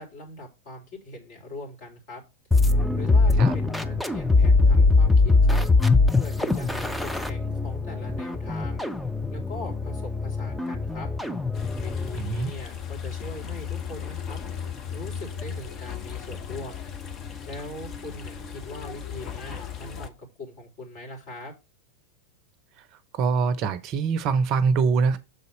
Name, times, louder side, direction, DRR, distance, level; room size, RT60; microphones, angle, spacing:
voice 1, 0.0-2.2 2.9-5.6 6.1-8.8 9.3-11.1 11.8-14.4 14.9-16.9 17.4-20.1 20.4-21.5, left 1 dB, 50° left, 3.3 m, -41 dB
sound 1, 2.5-12.2, left 3 dB, ahead, 0.6 m, -22 dB
sound 2, 11.5-20.1, left 8 dB, 30° left, 0.9 m, -36 dB
voice 2, 12.1-12.5 23.1-25.2, right 5 dB, 40° right, 0.6 m, -23 dB
6.9 x 4.1 x 5.2 m
figure-of-eight pair, 90°, 0 cm